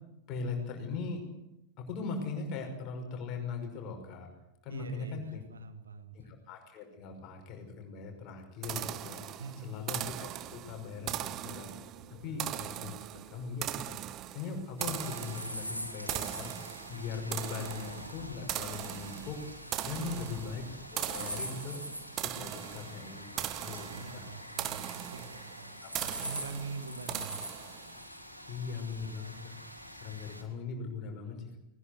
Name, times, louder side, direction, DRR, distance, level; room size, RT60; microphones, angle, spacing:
voice 1, 0.3-1.3 1.8-4.3 4.6-5.4 6.1-11.7 12.2-14.0 14.3-16.5 16.9-19.4 19.8-20.6 20.9-21.8 22.1-24.2 25.8-25.9 28.5-29.6 29.9-31.6, left 5 dB, 40° left, 3 dB, 5.7 m, -40 dB
voice 2, 4.7-6.3 9.4-9.7 12.2-12.4 19.9-20.4 23.9-27.4, right 4 dB, 70° right, 9 dB, 1.8 m, -44 dB
sound 1, 8.6-28.0, right 13 dB, 35° right, 0.9 m, -40 dB
sound 2, 10.1-21.6, right 5 dB, 50° right, 3.9 m, -58 dB
sound 3, 14.8-30.4, equal, 90° left, 3.3 m, -44 dB
20.5 x 20.0 x 8.2 m, 0.90 s
figure-of-eight pair, 90°, 0 cm